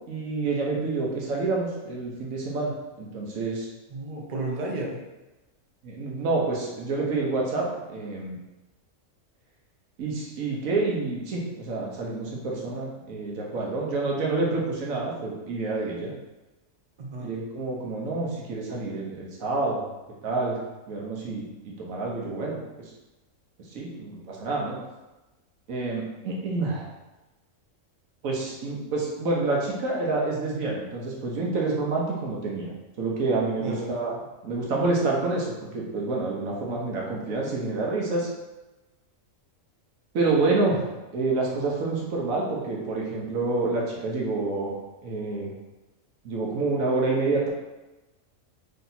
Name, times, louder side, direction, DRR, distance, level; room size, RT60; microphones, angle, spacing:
voice 1, 0.1-3.7 5.8-8.4 10.0-16.1 17.2-19.8 20.2-22.6 23.7-24.8 25.7-26.9 28.2-34.1 34.4-38.3 40.1-44.7 45.0-45.5 46.2-47.5, right 3 dB, 90° right, -2 dB, 1.3 m, -28 dB
voice 2, 3.9-5.0 17.0-17.3 33.6-33.9, right 2 dB, 45° right, 0 dB, 0.6 m, -32 dB
3.3 x 2.8 x 4.0 m, 1.1 s
omnidirectional pair, 1.4 m